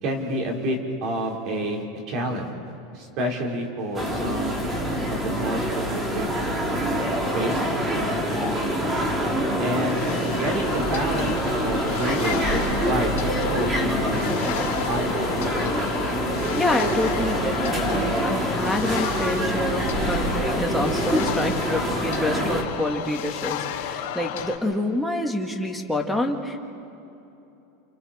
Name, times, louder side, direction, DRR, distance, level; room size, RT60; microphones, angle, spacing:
voice 1, 0.0-4.7 5.1-6.3 7.3-7.6 8.0-8.2 9.6-14.5 14.9-15.5, right 1 dB, 45° right, 1 dB, 4.3 m, -29 dB
sound 1, 3.9-22.6, equal, 20° right, 3.0 m, -25 dB
sound 2, 9.4-24.6, left 9 dB, 75° left, 4.1 m, -33 dB
voice 2, 16.5-26.6, left 1 dB, ahead, 0 dB, 2.0 m, -27 dB
29.5 x 29.0 x 4.4 m, 2.9 s
supercardioid pair, 150°, 0 cm